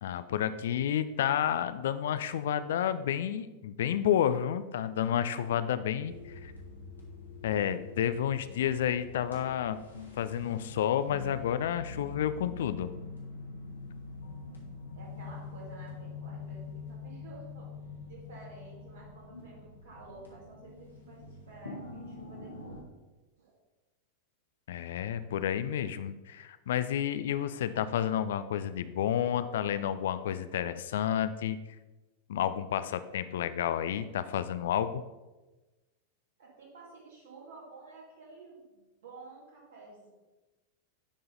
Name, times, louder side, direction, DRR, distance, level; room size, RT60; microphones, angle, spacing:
voice 1, 0.0-6.5 7.4-9.8 10.2-12.9 24.7-31.6 32.3-35.0, left 10 dB, 60° left, 12 dB, 0.3 m, -30 dB
sound 1, 6.0-22.8, left 4 dB, 85° left, 1.4 m, -45 dB
voice 2, 14.9-17.7 18.1-22.9 23.4-23.6 36.4-40.1, right 3 dB, 60° right, -3 dB, 2.4 m, -51 dB
9.9 x 3.9 x 3.9 m, 1.1 s
figure-of-eight pair, 90°, 0 cm